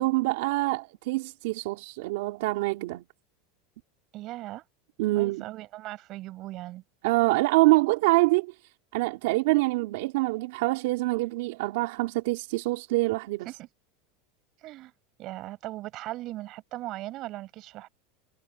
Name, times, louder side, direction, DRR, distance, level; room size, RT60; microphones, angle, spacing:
voice 1, 0.0-3.0 5.0-5.5 7.0-8.5 8.9-13.5, right 21 dB, 60° right, 4.2 m, -25 dB
voice 2, 4.1-4.6 5.1-6.8 13.4-13.7 14.6-14.9 15.2-17.9, right 16 dB, 35° right, 7.7 m, -38 dB
supercardioid pair, 175°, 0 cm